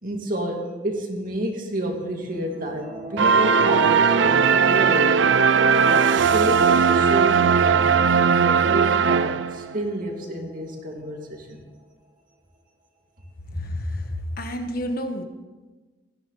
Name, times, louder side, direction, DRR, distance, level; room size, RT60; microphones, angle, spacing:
voice 1, 0.0-5.2 5.8-11.6, right 1 dB, 45° right, 1 dB, 2.5 m, -30 dB
sound 1, 2.3-10.8, right 2 dB, 30° right, 2.7 m, -34 dB
sound 2, 3.2-9.8, right 6 dB, 70° right, 0.5 m, -18 dB
voice 2, 13.5-15.2, left 1 dB, 50° left, 5 dB, 1.4 m, -29 dB
17.0 x 13.5 x 4.2 m, 1.3 s
head